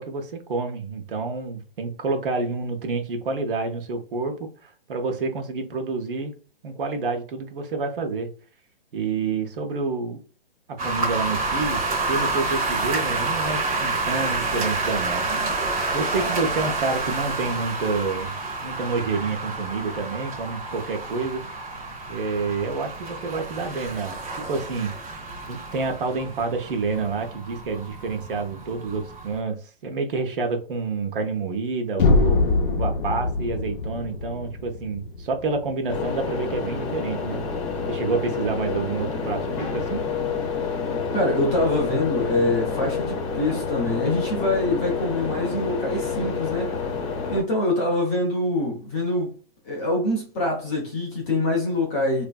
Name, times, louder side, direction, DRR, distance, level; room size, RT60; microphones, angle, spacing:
voice 1, 0.0-6.3 6.6-8.3 8.9-10.2 10.7-15.7 15.9-18.3 18.6-21.5 22.1-24.9 25.5-37.4 37.9-40.1, right 4 dB, 60° right, 0.8 m, -28 dB
sound 1, 10.8-29.4, right 3 dB, 40° right, 0.9 m, -29 dB
sound 2, 32.0-36.0, left 3 dB, 60° left, 0.6 m, -23 dB
sound 3, 35.9-47.4, left 5 dB, 35° left, 0.9 m, -28 dB
voice 2, 41.1-46.8 47.3-49.3 49.6-52.2, left 1 dB, 15° left, 0.5 m, -24 dB
3.1 x 2.5 x 2.2 m
hypercardioid pair, 155°, 30 cm